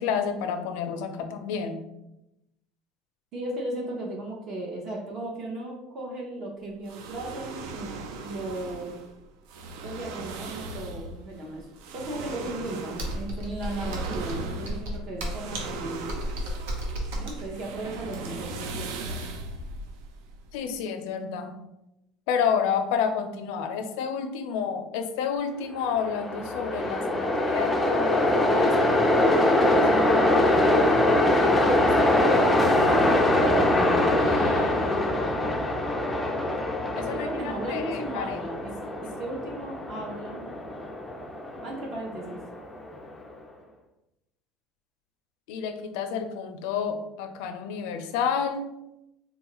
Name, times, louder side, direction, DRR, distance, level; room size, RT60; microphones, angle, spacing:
voice 1, 0.0-1.8 20.5-21.6 22.3-31.1 31.4-32.5 34.2-35.2 37.0-38.4 45.5-48.7, left 7 dB, 75° left, 7 dB, 0.4 m, -31 dB
voice 2, 3.3-7.9 8.2-8.9 9.8-11.7 11.9-16.1 17.2-19.3 37.1-38.7 39.0-40.4 41.6-42.4, right 1 dB, 40° right, -1 dB, 0.6 m, -36 dB
sound 1, 6.9-20.7, right 3 dB, 75° right, 0.4 m, -38 dB
Computer keyboard, 13.0-18.6, equal, 90° right, 0.8 m, -33 dB
Train, 25.8-43.0, left 1 dB, 10° left, 0.3 m, -23 dB
3.8 x 2.3 x 2.9 m, 0.88 s
cardioid pair, 160°, 0 cm